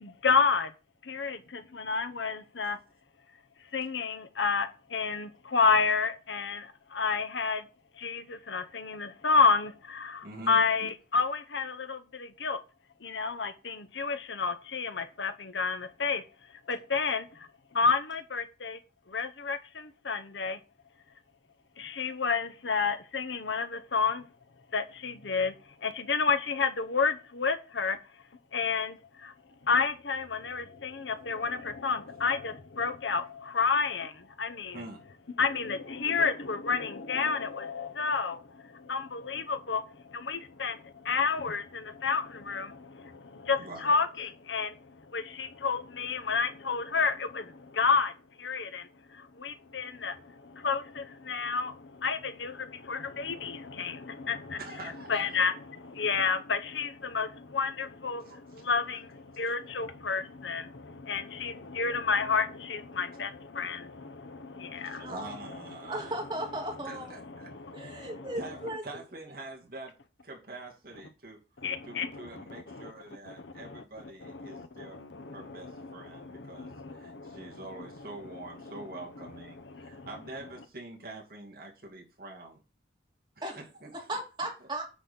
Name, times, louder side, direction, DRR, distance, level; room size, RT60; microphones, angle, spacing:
voice 1, 0.0-0.7 1.0-2.8 3.7-7.7 8.0-12.6 13.0-16.2 16.7-17.5 17.7-18.8 19.1-20.6 21.8-24.3 24.7-25.5 25.8-28.0 28.5-29.3 29.6-34.8 35.4-48.1 48.4-54.6 55.1-65.1 65.8-65.9 67.4-68.3 71.6-72.9 73.3-73.8 74.2-77.6 79.7-80.1, left 5 dB, 80° left, 1.0 m, -30 dB
voice 2, 10.2-10.6 34.7-35.0 43.6-43.9 54.6-55.4 58.2-59.0 64.8-66.2 66.8-67.5 67.9-70.0 70.2-71.4 71.8-75.0 75.3-82.6 83.4-84.1, right 2 dB, 50° right, 2.6 m, -46 dB
voice 3, 65.0-65.3 65.9-67.2 67.7-68.9 83.4-83.6 84.1-84.8, right 1 dB, 25° right, 2.9 m, -36 dB
9.9 x 4.1 x 7.0 m
head